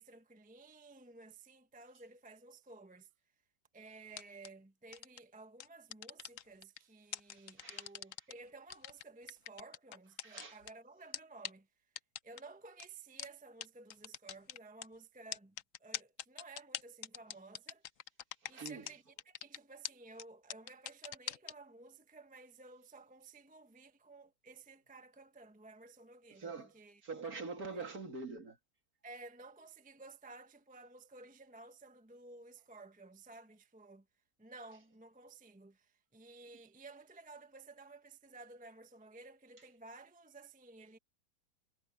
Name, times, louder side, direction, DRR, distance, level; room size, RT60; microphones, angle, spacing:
voice 1, 0.0-3.1 3.7-11.7 12.2-15.5 15.8-17.8 18.5-27.0 27.7-27.8 29.0-34.0 34.4-41.0, right 3 dB, 5° right, 0.8 m, -55 dB
sound 1, 4.1-4.5 4.9-5.2 5.6-6.8 7.1-8.3 8.7-10.7 11.1-11.2 11.4-11.5 12.0-12.4 12.8-12.9 13.2-13.3 13.6-13.7 13.9-14.9 15.3-18.9 19.2-19.6 19.8-19.9 20.2-20.3 20.5-21.5, left 11 dB, 60° left, 0.9 m, -42 dB
voice 2, 7.3-7.9 10.2-10.6 18.5-18.8 26.3-26.7 27.0-28.6, right 4 dB, 55° right, 2.8 m, -44 dB
omnidirectional pair, 1.9 m